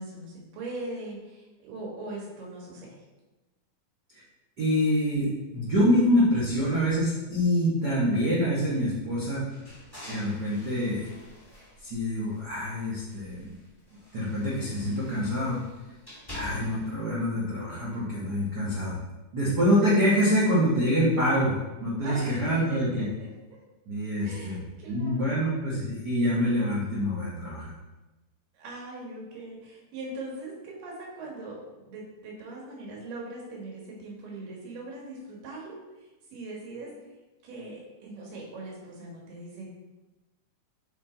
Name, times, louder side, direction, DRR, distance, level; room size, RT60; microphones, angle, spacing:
voice 1, 0.0-3.0 22.0-23.6 24.2-25.3 28.5-36.9 37.4-39.7, right 2 dB, 85° right, -3 dB, 3.2 m, -41 dB
voice 2, 4.6-9.4 10.1-11.1 11.8-13.6 14.1-15.6 16.3-19.0 19.3-23.1 23.9-24.6 24.9-27.7, equal, 65° right, -8 dB, 0.9 m, -26 dB
sound 1, 9.5-12.7 13.0-17.0, left 1 dB, 15° left, 0.8 m, -46 dB
6.0 x 4.3 x 3.9 m, 1.1 s
omnidirectional pair, 3.7 m